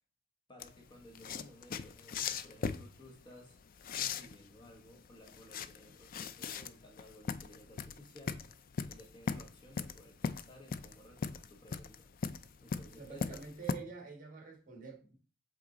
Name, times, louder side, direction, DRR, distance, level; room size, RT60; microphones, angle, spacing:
voice 1, 0.5-3.6 3.9-8.5 8.9-12.1 12.6-13.4, equal, 25° left, 1.2 m, -56 dB
sound 1, 0.6-13.7, left 5 dB, 45° left, 0.4 m, -39 dB
voice 2, 12.9-15.2, right 5 dB, 45° right, 1.7 m, -47 dB
7.9 x 3.5 x 3.9 m
head